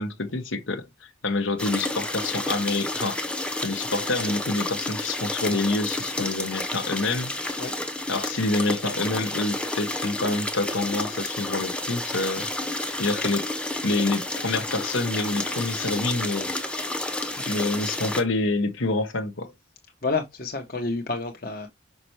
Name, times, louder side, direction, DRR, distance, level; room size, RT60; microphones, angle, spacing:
voice 1, 0.0-3.2 3.6-7.6 8.1-13.5 13.8-16.5 17.4-19.5, left 2 dB, 80° left, 1.1 m, -27 dB
sound 1, 1.6-18.2, left 2 dB, 5° left, 0.7 m, -30 dB
voice 2, 20.0-21.7, left 3 dB, 50° left, 1.0 m, -29 dB
5.8 x 5.5 x 3.1 m
head